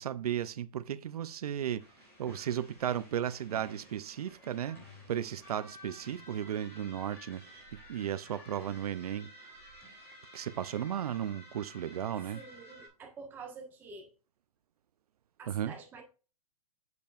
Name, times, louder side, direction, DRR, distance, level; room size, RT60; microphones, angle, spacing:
voice 1, 0.0-1.8 2.2-4.8 5.1-9.5 10.3-12.4 15.5-15.7, right 10 dB, 90° right, 0.6 m, -35 dB
sound 1, 1.8-12.9, equal, 10° left, 3.2 m, -53 dB
voice 2, 12.3-14.1 15.4-16.0, right 4 dB, 10° right, 1.4 m, -47 dB
8.3 x 6.8 x 2.5 m
hypercardioid pair, 180°, 19 cm